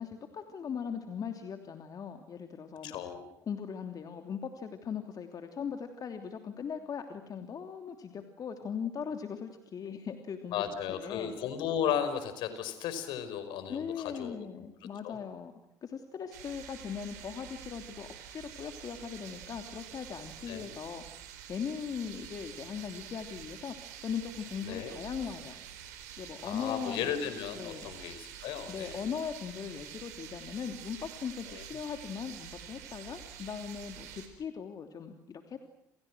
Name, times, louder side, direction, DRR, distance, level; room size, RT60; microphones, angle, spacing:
voice 1, 0.0-3.0 3.5-10.5 10.9-11.3 13.7-15.5 15.8-21.0 21.5-25.6 26.2-27.1 27.5-27.9 28.7-35.7, left 7 dB, 45° left, 6 dB, 3.1 m, -39 dB
voice 2, 2.8-3.3 10.5-14.5 15.0-15.2 20.5-20.7 24.6-24.9 26.4-29.0 31.6-31.7, left 9 dB, 65° left, 11 dB, 5.2 m, -35 dB
sound 1, 16.3-34.3, right 9 dB, 80° right, 4.6 m, -47 dB
29.5 x 28.5 x 6.3 m, 0.77 s
hypercardioid pair, 60°, 9 cm